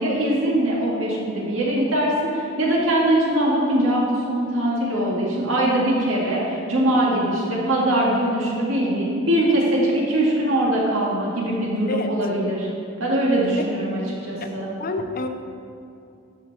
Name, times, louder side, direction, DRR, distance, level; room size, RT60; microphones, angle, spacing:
voice 1, 0.0-12.7 13.0-14.7, right 1 dB, 85° right, -4 dB, 2.0 m, -22 dB
voice 2, 14.8-15.3, left 3 dB, 45° left, 6 dB, 0.6 m, -28 dB
13.0 x 4.6 x 4.2 m, 2.6 s
head